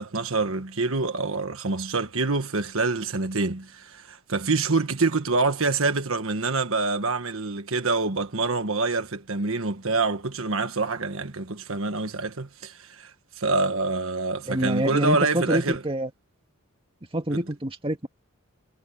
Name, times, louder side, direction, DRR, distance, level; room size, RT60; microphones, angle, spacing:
voice 1, 0.0-15.8 17.3-17.4, right 3 dB, 70° right, 1.4 m, -26 dB
voice 2, 14.5-16.1 17.1-18.1, right 1 dB, 25° right, 2.3 m, -26 dB
head